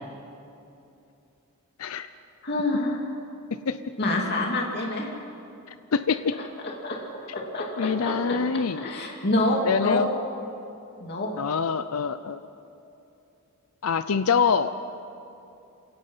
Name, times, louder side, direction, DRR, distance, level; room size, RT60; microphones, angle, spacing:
voice 1, 2.4-3.1 4.0-5.1 6.8-8.1 8.8-10.0 11.0-11.3, left 2 dB, 50° left, -1 dB, 2.6 m, -27 dB
voice 2, 5.9-6.3 7.8-8.8 9.6-10.1 11.4-12.4 13.8-14.7, left 6 dB, 75° left, 11 dB, 0.6 m, -25 dB
27.5 x 17.5 x 5.6 m, 2.7 s
head